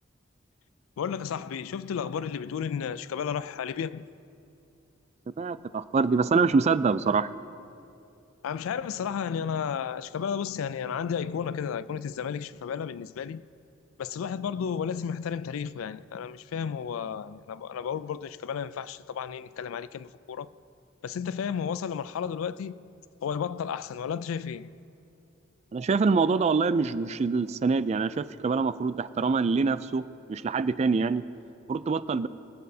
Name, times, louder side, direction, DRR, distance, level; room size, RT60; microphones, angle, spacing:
voice 1, 1.0-4.0 8.4-13.5 14.0-20.5 21.0-22.8 23.2-24.7, left 7 dB, 90° left, 0.3 m, -33 dB
voice 2, 5.4-7.3 25.7-30.0 30.3-31.2 31.7-32.3, right 4 dB, 35° right, 0.3 m, -25 dB
24.0 x 8.6 x 2.8 m
head